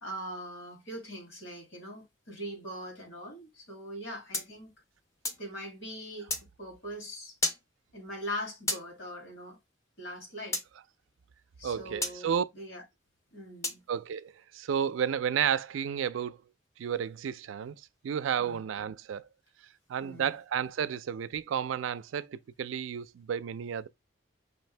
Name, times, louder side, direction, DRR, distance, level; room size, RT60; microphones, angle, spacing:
voice 1, 0.0-4.7 5.4-6.3 6.6-7.4 7.9-9.6 10.0-10.6 11.6-12.3 12.5-12.8 13.3-13.8 18.4-18.6 20.0-20.3, equal, 80° left, 2.3 m, -41 dB
sound 1, 4.3-5.5 6.3-6.5 7.4-7.6 8.7-8.9 10.5-10.7 12.0-12.2 13.6-13.8, left 2 dB, 15° left, 0.5 m, -32 dB
voice 2, 11.6-12.4 13.9-16.4 16.8-17.8 18.0-19.2 19.9-23.9, right 8 dB, 80° right, 0.4 m, -32 dB
5.2 x 2.6 x 3.2 m
head